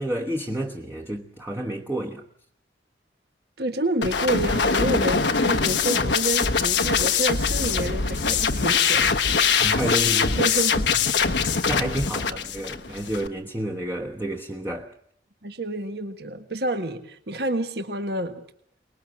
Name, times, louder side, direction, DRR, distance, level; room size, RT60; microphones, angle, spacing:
voice 1, 0.0-2.2 9.6-10.5 11.2-14.9, right 1 dB, 10° right, 1.0 m, -30 dB
voice 2, 3.6-9.1 10.3-10.9 11.2-11.6 12.3-12.4 15.4-18.4, right 1 dB, 65° right, 1.6 m, -29 dB
sound 1, 4.0-13.3, left 5 dB, 80° left, 1.1 m, -23 dB
24.0 x 20.5 x 7.5 m
head